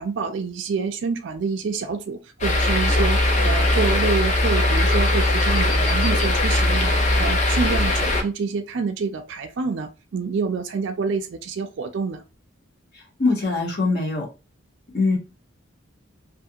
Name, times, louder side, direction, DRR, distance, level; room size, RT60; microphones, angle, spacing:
voice 1, 0.0-12.2, right 5 dB, 60° right, 0.4 m, -27 dB
sound 1, 2.4-8.2, left 1 dB, 35° left, 0.5 m, -20 dB
voice 2, 13.2-14.3 14.9-15.2, left 3 dB, 50° left, 1.1 m, -22 dB
2.5 x 2.3 x 2.7 m
head